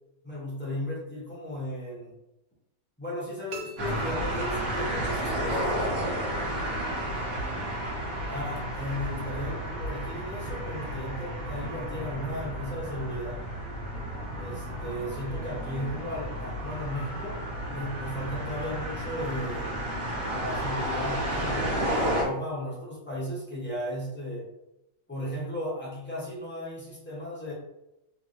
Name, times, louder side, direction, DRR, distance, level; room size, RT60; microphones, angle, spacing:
voice 1, 0.2-2.1 3.0-6.0 8.3-13.4 14.4-19.8 20.3-24.5 25.1-27.5, left 1 dB, 15° left, -6 dB, 0.3 m, -35 dB
sound 1, 3.5-5.1, right 4 dB, 80° right, 0.6 m, -44 dB
sound 2, 3.8-22.2, right 1 dB, 60° right, 1.3 m, -32 dB
3.3 x 3.2 x 2.5 m, 0.93 s
omnidirectional pair, 1.9 m